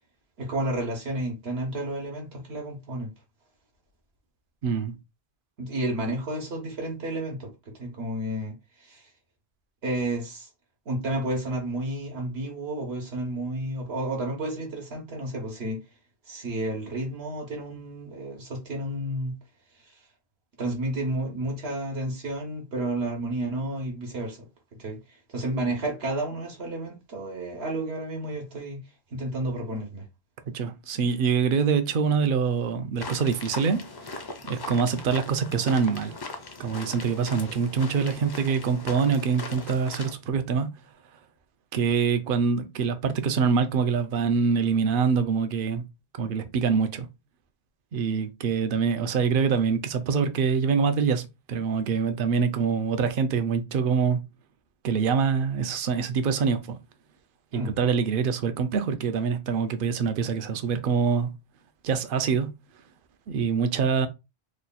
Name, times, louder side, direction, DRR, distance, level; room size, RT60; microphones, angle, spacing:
voice 1, 0.4-3.1 5.6-7.5 7.8-9.0 9.8-10.5 10.9-15.8 16.3-19.3 20.6-24.5 24.8-25.0 25.3-28.8 29.1-30.0 57.5-57.8, right 1 dB, 80° right, 1.3 m, -31 dB
voice 2, 4.6-5.0 30.5-33.8 34.5-36.2 36.6-40.7 41.7-45.8 46.2-47.1 47.9-51.2 51.5-54.2 54.8-56.8 57.5-61.3 61.8-62.5 63.3-64.1, right 6 dB, 65° right, 0.7 m, -25 dB
sound 1, 33.0-40.1, left 3 dB, 40° left, 0.3 m, -40 dB
3.0 x 2.3 x 4.0 m
omnidirectional pair, 1.0 m